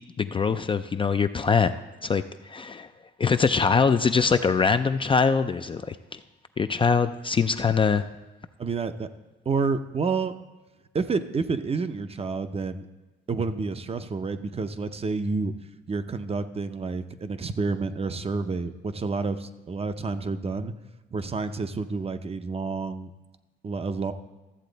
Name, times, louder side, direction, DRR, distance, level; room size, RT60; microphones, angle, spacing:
voice 1, 0.2-1.7 2.0-2.9 3.2-6.2 6.6-8.0, left 5 dB, 25° left, 9 dB, 0.4 m, -23 dB
voice 2, 8.6-9.1 9.5-10.3 10.9-12.9 13.3-15.5 15.9-20.7 21.1-23.1 23.6-24.1, right 4 dB, 30° right, 10 dB, 0.6 m, -29 dB
13.5 x 7.4 x 4.0 m, 1.1 s
cardioid pair, 90°, 20 cm